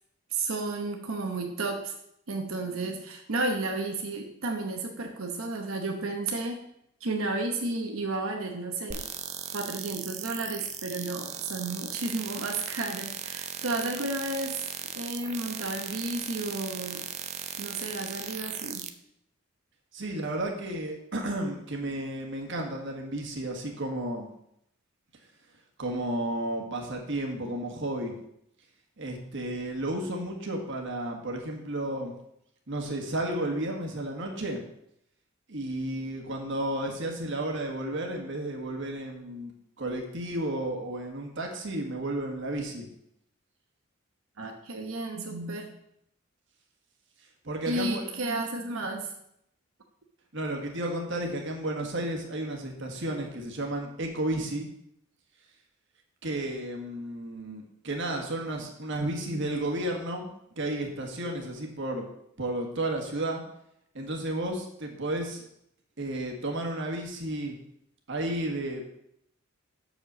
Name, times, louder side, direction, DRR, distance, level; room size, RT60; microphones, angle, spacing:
voice 1, 0.3-1.9 2.3-6.6 7.0-9.1 9.5-14.7 15.0-17.1 17.6-18.9 44.4-45.7 47.7-49.1, right 2 dB, 85° right, 3 dB, 1.0 m, -32 dB
sound 1, 8.9-18.9, right 8 dB, 35° right, 0.6 m, -38 dB
voice 2, 19.9-24.3 25.8-28.2 29.0-32.1 32.7-34.6 35.5-39.5 39.8-42.9 47.4-48.0 50.3-54.7 56.2-62.1 62.4-63.4 63.9-65.5 66.0-67.6 68.1-68.8, right 1 dB, 60° right, 2 dB, 1.5 m, -32 dB
6.7 x 5.2 x 6.8 m, 0.76 s
head